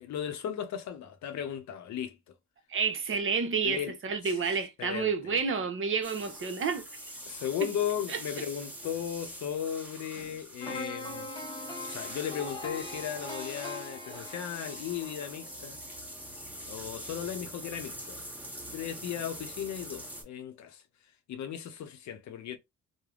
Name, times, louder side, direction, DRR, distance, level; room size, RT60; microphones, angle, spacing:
voice 1, 0.0-2.2 3.6-3.9 4.2-5.4 7.3-11.3 11.9-15.8 16.7-18.2 18.7-20.8 21.3-22.6, left 9 dB, 70° left, 0.7 m, -36 dB
voice 2, 2.7-6.8 7.6-7.7 8.1-8.2, right 5 dB, 45° right, 0.8 m, -30 dB
sound 1, 6.0-20.2, equal, 5° right, 1.0 m, -44 dB
sound 2, 10.6-16.6 17.0-17.1, left 2 dB, 15° left, 0.6 m, -42 dB
3.3 x 2.1 x 2.4 m
cardioid pair, 90°, 30 cm